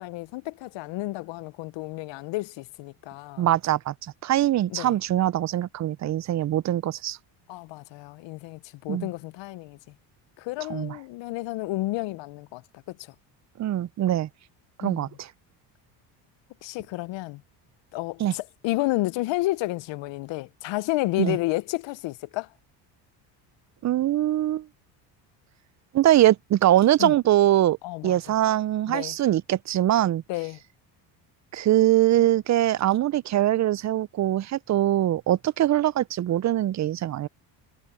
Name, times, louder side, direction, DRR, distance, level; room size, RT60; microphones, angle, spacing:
voice 1, 0.0-3.5 4.7-4.9 7.5-9.8 10.4-12.6 12.9-13.1 14.8-15.1 16.6-17.4 17.9-22.5 27.0-27.1 27.8-28.2 28.9-29.2 30.3-30.6, left 19 dB, 60° left, 0.8 m, -31 dB
voice 2, 3.4-3.9 4.2-7.2 8.9-9.1 10.7-11.0 13.6-14.3 14.8-15.3 18.2-18.3 21.2-21.4 23.8-24.7 25.9-27.8 28.0-30.2 31.5-37.3, right 13 dB, 35° right, 0.5 m, -22 dB
supercardioid pair, 80°, 49 cm